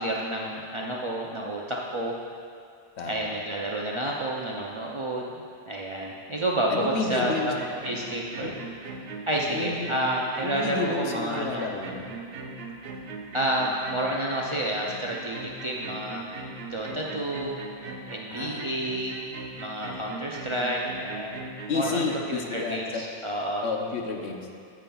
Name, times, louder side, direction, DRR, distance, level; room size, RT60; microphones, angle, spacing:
voice 1, 0.0-2.2 3.0-5.3 5.7-8.6 9.3-11.6 13.3-16.2 16.7-17.6 18.1-19.2 19.5-21.3 21.7-23.7, right 1 dB, 45° right, -3 dB, 0.4 m, -30 dB
voice 2, 3.0-3.3 6.7-7.5 8.4-8.5 9.5-9.9 10.4-12.1 18.3-19.0 21.7-23.0 23.6-24.5, left 4 dB, 85° left, 2 dB, 1.0 m, -31 dB
sound 1, 6.9-22.2, right 3 dB, 65° right, 0.8 m, -40 dB
8.9 x 8.5 x 2.3 m, 2.3 s
omnidirectional pair, 1.1 m